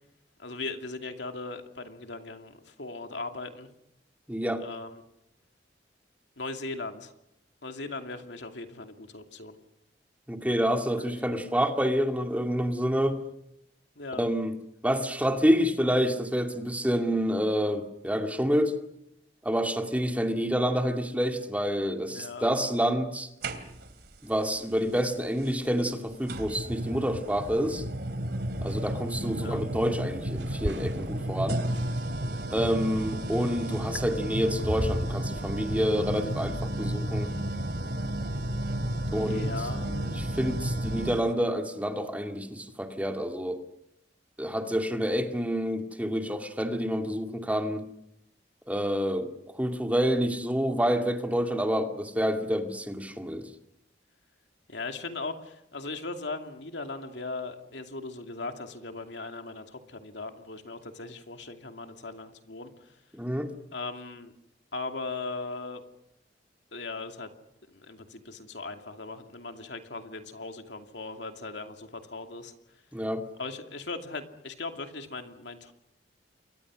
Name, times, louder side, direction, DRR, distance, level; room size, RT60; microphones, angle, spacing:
voice 1, 0.4-3.7 4.6-5.0 6.4-7.1 7.6-9.6 11.0-11.2 14.0-14.2 22.1-22.5 29.4-29.6 39.3-40.1 54.7-62.9 63.7-64.3 64.7-65.8 66.7-67.3 67.7-72.5 73.4-75.7, left 3 dB, 80° left, 5 dB, 2.6 m, -38 dB
voice 2, 4.3-4.6 10.3-13.2 14.2-14.5 14.8-18.7 19.4-23.3 24.2-27.8 28.6-31.6 32.5-37.3 39.1-39.5 40.2-43.6 44.4-47.8 48.7-49.3 49.5-53.5 63.1-63.5 72.9-73.3, equal, 10° right, 4 dB, 2.3 m, -28 dB
sound 1, 23.4-24.1 25.4-25.5 26.3-41.3, right 1 dB, 65° right, 2.9 m, -32 dB
sound 2, 27.7-28.1 28.6-34.0, right 1 dB, 80° right, 2.1 m, -42 dB
28.5 x 23.0 x 6.4 m, 0.79 s
head